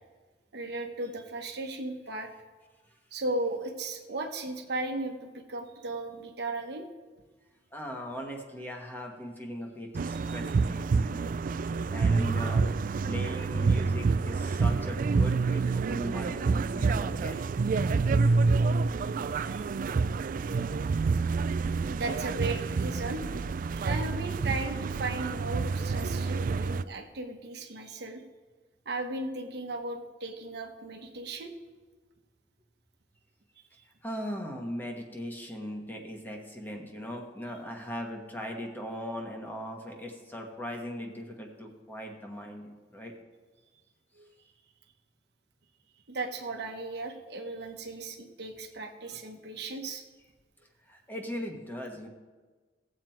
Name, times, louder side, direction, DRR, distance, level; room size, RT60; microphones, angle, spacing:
voice 1, 0.5-2.3 3.1-6.9 10.1-10.4 18.9-19.1 19.5-19.6 20.5-20.8 21.9-23.2 23.7-28.2 28.8-31.5 43.7-43.8 44.1-44.3 46.1-50.0, right 2 dB, 65° right, 3 dB, 1.1 m, -36 dB
voice 2, 7.7-11.2 11.9-12.7 13.0-17.4 22.2-23.2 34.0-43.1 50.9-52.1, equal, 10° left, 1 dB, 1.4 m, -39 dB
sound 1, 9.9-26.8, right 4 dB, 50° right, 0.3 m, -28 dB
17.0 x 7.6 x 4.5 m, 1.3 s
head